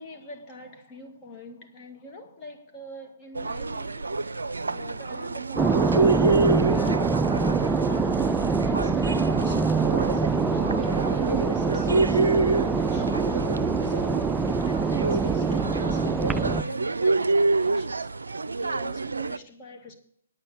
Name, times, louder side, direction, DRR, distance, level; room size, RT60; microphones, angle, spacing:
voice 1, 0.0-7.1 7.6-13.2 13.8-18.0 18.6-19.9, equal, 25° left, 2.1 m, -44 dB
sound 1, 3.3-19.4, right 3 dB, 75° right, 0.5 m, -27 dB
sound 2, 5.6-16.6, right 4 dB, 10° right, 0.4 m, -24 dB
9.0 x 8.9 x 8.4 m
figure-of-eight pair, 130°, 0 cm